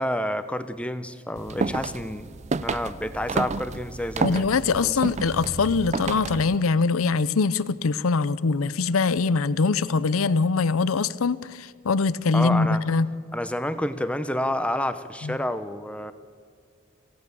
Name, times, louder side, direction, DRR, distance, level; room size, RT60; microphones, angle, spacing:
voice 1, 0.0-5.0 12.3-12.8 13.3-16.1, left 1 dB, 5° left, 11 dB, 0.8 m, -29 dB
sound 1, 1.4-6.6, right 4 dB, 35° right, 0.5 m, -30 dB
voice 2, 4.2-13.1 15.2-15.3, left 4 dB, 90° left, 17 dB, 0.6 m, -23 dB
27.0 x 16.0 x 6.9 m, 2.2 s
head